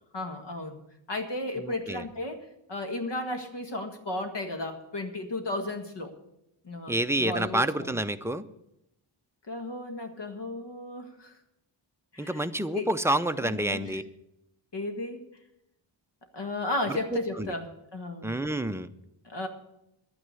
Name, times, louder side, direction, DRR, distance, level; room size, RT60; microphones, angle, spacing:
voice 1, 0.1-0.8 1.1-6.2 6.6-7.9 9.5-11.3 12.1-12.4 12.7-13.0 13.4-14.0 14.7-15.2 16.3-18.4 19.2-19.5, left 2 dB, 60° left, 6 dB, 1.8 m, -34 dB
voice 2, 1.6-2.0 6.9-8.5 12.2-14.0 16.9-17.5 18.2-18.9, right 1 dB, 5° right, 9 dB, 0.5 m, -29 dB
11.0 x 9.4 x 8.3 m, 0.84 s
wide cardioid pair, 130°, 47 cm